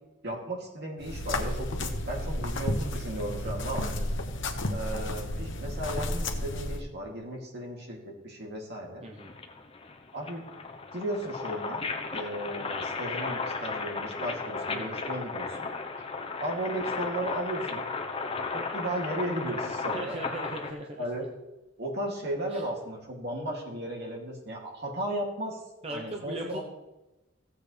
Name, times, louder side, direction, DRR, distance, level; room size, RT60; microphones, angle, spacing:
voice 1, 0.2-3.9 4.7-9.0 10.1-10.4 10.9-15.7 16.4-17.8 18.5-20.2 21.0-21.3 21.8-25.6 25.9-26.6, right 1 dB, 60° right, -2 dB, 2.7 m, -35 dB
sound 1, 1.0-6.8, left 1 dB, 70° left, 1.1 m, -32 dB
voice 2, 9.0-9.3 14.7-15.0 19.9-21.3 22.5-22.6 25.8-26.6, right 1 dB, 30° right, 1 dB, 0.9 m, -39 dB
sound 2, 9.2-20.7, left 4 dB, 30° left, 0.9 m, -35 dB
15.5 x 8.2 x 3.4 m, 1.0 s
head